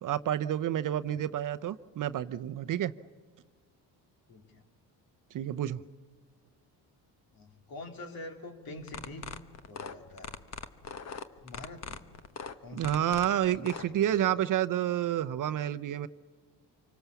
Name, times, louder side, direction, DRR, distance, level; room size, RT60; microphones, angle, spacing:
voice 1, 0.0-2.9 5.3-5.8 12.7-16.1, right 11 dB, 50° right, 12 dB, 0.7 m, -29 dB
voice 2, 4.3-4.6 7.3-9.3 9.7-10.4 11.4-12.1 12.6-14.5, left 2 dB, 55° left, 4 dB, 3.4 m, -46 dB
sound 1, 8.8-13.8, left 6 dB, 40° left, 1.2 m, -40 dB
26.5 x 24.5 x 7.0 m, 1.5 s
cardioid pair, 120°, 41 cm